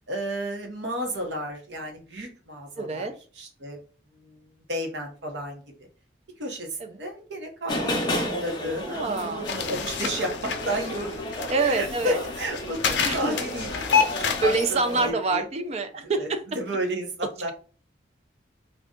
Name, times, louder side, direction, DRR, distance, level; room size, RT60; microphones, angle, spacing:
voice 1, 0.1-3.8 4.1-5.6 6.4-13.7 14.2-14.5 14.9-15.4 16.0-16.3 16.5-17.5, equal, 75° right, 2 dB, 0.9 m, -32 dB
voice 2, 2.8-3.1 6.8-6.9 8.8-9.5 11.5-12.2 13.0-13.4 14.4-16.4, right 3 dB, 35° right, 8 dB, 0.4 m, -26 dB
sound 1, 7.7-15.1, left 1 dB, 25° left, 0.5 m, -33 dB
sound 2, 9.5-14.6, left 6 dB, 75° left, 0.5 m, -28 dB
2.6 x 2.3 x 3.6 m, 0.38 s
head